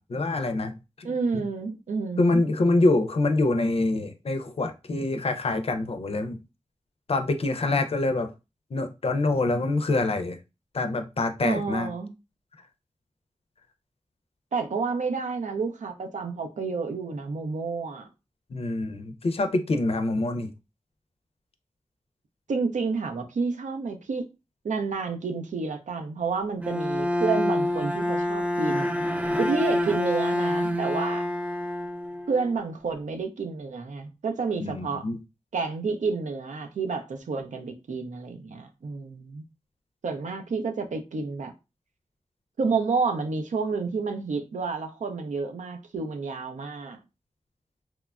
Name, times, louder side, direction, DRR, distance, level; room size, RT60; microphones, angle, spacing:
voice 1, 0.0-1.5 2.2-6.4 7.1-8.3 8.7-10.4 10.7-11.9 18.5-20.5 34.6-35.2, left 2 dB, 50° left, 0.4 m, -25 dB
voice 2, 1.0-2.4 11.4-12.1 14.5-18.1 22.5-24.2 24.6-28.9 29.4-31.3 32.3-35.0 35.5-39.4 40.0-41.5 42.6-47.0, right 4 dB, 80° right, 0.5 m, -30 dB
Bowed string instrument, 26.6-32.6, left 1 dB, 10° right, 0.4 m, -27 dB
2.9 x 2.2 x 2.3 m
cardioid pair, 50°, 13 cm